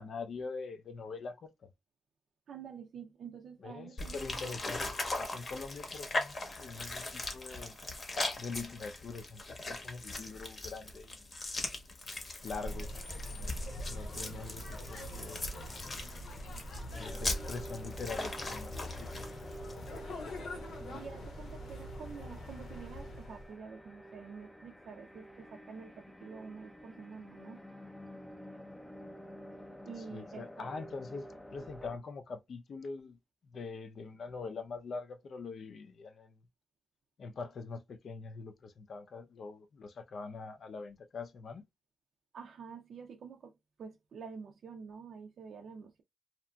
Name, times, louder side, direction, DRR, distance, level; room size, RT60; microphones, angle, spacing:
voice 1, 0.0-1.7 3.6-7.8 8.4-11.3 12.4-12.9 13.3-13.5 13.8-15.5 16.9-19.1 30.1-33.2 33.4-36.4 37.2-41.6, left 4 dB, 55° left, 0.5 m, -43 dB
voice 2, 2.5-4.5 20.9-27.6 29.9-30.7 42.3-46.0, right 6 dB, 65° right, 0.4 m, -48 dB
sound 1, 4.0-20.0, left 2 dB, 35° left, 0.8 m, -40 dB
sound 2, 12.4-23.5, left 1 dB, 80° left, 0.9 m, -43 dB
sound 3, 16.9-32.0, equal, 5° left, 0.5 m, -50 dB
2.8 x 2.5 x 2.2 m
wide cardioid pair, 130°, 0 cm